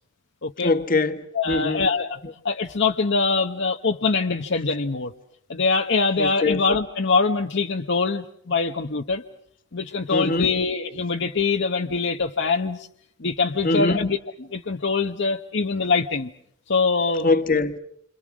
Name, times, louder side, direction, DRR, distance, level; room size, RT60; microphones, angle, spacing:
voice 1, 0.6-1.8 2.2-2.3 6.2-6.6 10.1-10.5 13.6-14.1 17.2-17.8, left 3 dB, 45° left, 1.5 m, -23 dB
voice 2, 1.3-2.2 2.4-5.1 5.5-9.2 9.7-12.9 13.2-14.2 14.5-16.3 16.7-17.3, left 4 dB, 60° left, 0.9 m, -23 dB
29.0 x 26.5 x 6.1 m
head